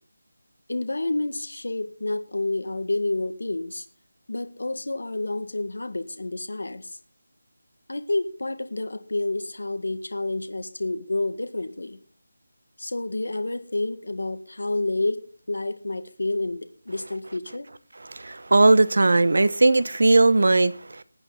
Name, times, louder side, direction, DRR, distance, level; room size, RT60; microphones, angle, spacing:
voice 1, 0.7-3.9 4.3-7.0 7.9-12.0 12.8-15.2 15.5-17.7, left 2 dB, 80° left, 1.7 m, -29 dB
voice 2, 18.1-21.0, right 2 dB, 60° right, 0.9 m, -18 dB
19.0 x 9.3 x 4.1 m
figure-of-eight pair, 180°, 0 cm